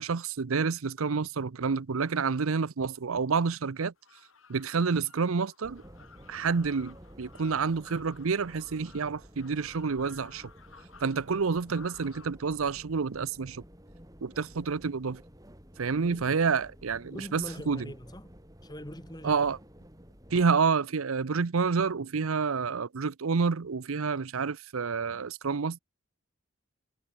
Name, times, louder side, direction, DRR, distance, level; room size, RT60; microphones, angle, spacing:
voice 1, 0.0-3.9 4.5-5.8 6.3-10.5 11.0-13.6 14.2-15.2 15.8-17.9 19.2-19.6 20.3-25.8, right 5 dB, 85° right, 0.7 m, -29 dB
sound 1, 4.0-12.3, left 5 dB, 75° left, 6.6 m, -55 dB
sound 2, 5.6-20.4, equal, 15° right, 4.2 m, -52 dB
voice 2, 17.0-18.3 18.6-19.4, equal, 20° left, 4.9 m, -42 dB
head